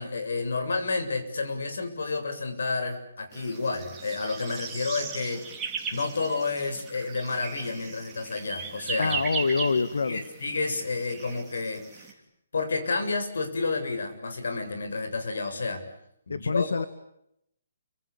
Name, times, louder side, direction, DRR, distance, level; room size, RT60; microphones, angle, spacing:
voice 1, 0.0-5.5 5.9-9.2 10.0-12.1 12.5-15.8 16.3-16.7, left 3 dB, 70° left, 7 dB, 7.6 m, -30 dB
sound 1, 3.3-12.1, right 5 dB, 5° right, 3.4 m, -38 dB
voice 2, 9.0-10.2 16.3-16.9, left 4 dB, 85° left, 12 dB, 1.8 m, -26 dB
29.5 x 25.5 x 7.1 m, 0.77 s
hypercardioid pair, 175°, 0 cm